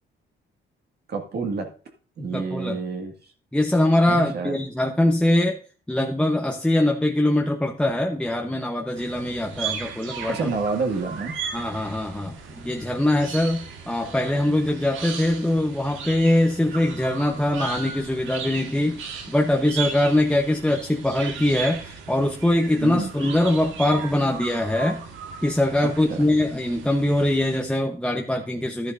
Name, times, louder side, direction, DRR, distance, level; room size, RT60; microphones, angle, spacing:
voice 1, 1.1-1.7 2.2-3.1 4.1-4.6 10.3-11.4 22.8-23.1 25.8-26.3, right 4 dB, 55° right, 3 dB, 2.1 m, -28 dB
voice 2, 2.3-2.8 3.5-5.6 5.9-10.5 11.5-25.0 25.4-28.9, left 1 dB, 5° left, 2 dB, 1.0 m, -22 dB
sound 1, 9.0-27.6, right 6 dB, 80° right, 1.9 m, -37 dB
11.5 x 10.5 x 2.6 m, 0.39 s
cardioid pair, 90°, 20 cm